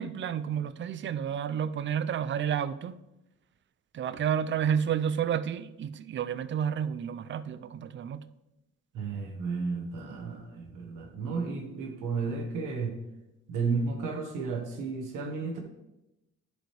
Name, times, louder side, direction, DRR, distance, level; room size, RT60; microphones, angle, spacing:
voice 1, 0.0-3.0 3.9-8.3, right 8 dB, 40° right, 0.5 m, -30 dB
voice 2, 8.9-13.0 13.5-15.6, right 4 dB, 90° right, 1.5 m, -33 dB
11.0 x 5.1 x 3.4 m
cardioid pair, 90°, 30 cm